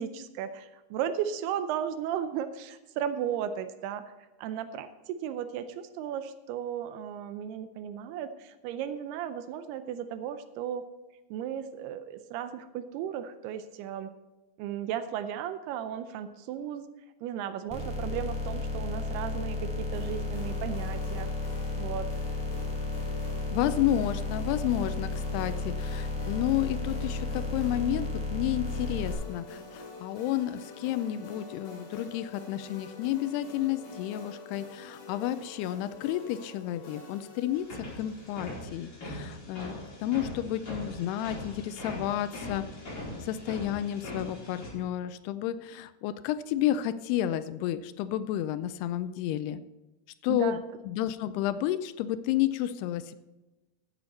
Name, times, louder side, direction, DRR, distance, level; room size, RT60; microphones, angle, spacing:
voice 1, 0.0-4.0 4.4-10.9 11.3-14.1 14.6-16.8 17.2-21.3 21.8-22.1 50.3-50.6, right 9 dB, 85° right, 10 dB, 2.6 m, -35 dB
sound 1, 17.7-29.1, left 2 dB, ahead, 3.2 m, -33 dB
sound 2, 19.9-38.5, left 3 dB, 60° left, 3.7 m, -46 dB
voice 2, 23.5-42.6 43.2-49.6 50.2-53.2, left 12 dB, 85° left, 13 dB, 2.6 m, -31 dB
sound 3, 37.5-44.7, left 1 dB, 25° left, 5.2 m, -41 dB
15.0 x 7.8 x 4.2 m, 1.1 s
omnidirectional pair, 4.6 m